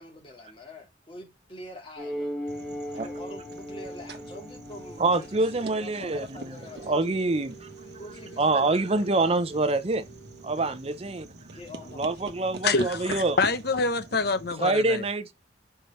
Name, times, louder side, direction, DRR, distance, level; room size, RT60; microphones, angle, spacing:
voice 1, 0.0-2.3 2.9-7.3 8.0-9.5 11.5-12.3, left 1 dB, 30° left, 2.3 m, -45 dB
sound 1, 2.0-6.9, equal, 5° left, 3.2 m, -38 dB
sound 2, 2.5-14.5, right 2 dB, 60° right, 1.0 m, -44 dB
voice 2, 5.0-7.7 8.4-10.1 10.4-11.3 11.9-13.4 14.6-15.3, right 2 dB, 30° right, 0.6 m, -26 dB
sound 3, 6.5-11.5, right 3 dB, 70° left, 1.4 m, -50 dB
voice 3, 12.6-15.0, left 3 dB, 55° left, 0.9 m, -26 dB
5.3 x 4.4 x 5.5 m
head